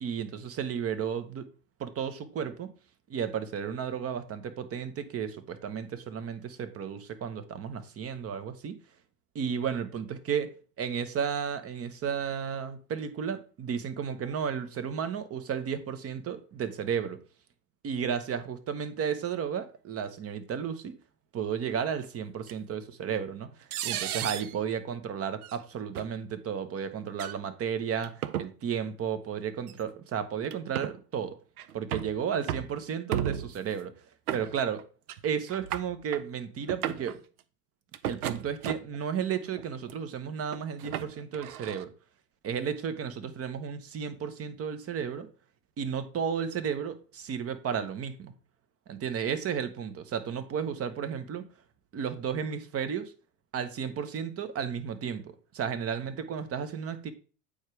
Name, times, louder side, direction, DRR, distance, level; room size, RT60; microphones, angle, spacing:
voice 1, 0.0-1.5 1.8-2.7 3.1-8.8 9.3-10.5 10.8-17.2 17.8-20.9 21.3-31.4 31.7-33.9 34.3-34.8 35.2-37.2 38.0-41.9 42.4-45.3 45.8-48.3 48.9-51.5 51.9-53.1 53.5-57.1, right 7 dB, 35° right, 1.0 m, -33 dB
sound 1, 22.5-22.6 23.7-24.6 25.4-25.6 26.0-26.1 27.1-27.4 28.0-28.5 29.7-29.8 30.5-31.0 31.6-32.1 32.5-32.8 33.1-33.6 34.3-34.8 35.1-35.2 35.5-36.2 36.6-37.1 37.9-39.0 39.6-39.9 40.5-41.8, right 10 dB, 85° right, 0.6 m, -34 dB
8.5 x 4.9 x 3.2 m
hypercardioid pair, 90°, 43 cm